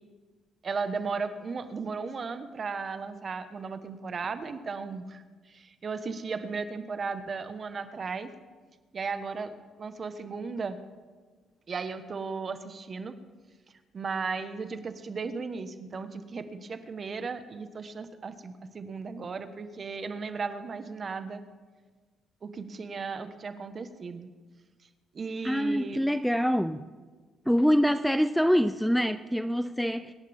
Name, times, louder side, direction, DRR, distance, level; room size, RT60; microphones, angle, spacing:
voice 1, 0.6-8.3 8.9-10.8 11.7-13.2 13.9-21.4 22.4-24.3 25.1-26.0, right 4 dB, 45° right, 9 dB, 1.3 m, -36 dB
voice 2, 25.4-26.8 27.5-30.1, equal, ahead, 12 dB, 0.5 m, -25 dB
26.5 x 11.5 x 3.6 m, 1.4 s
cardioid pair, 90°, 0 cm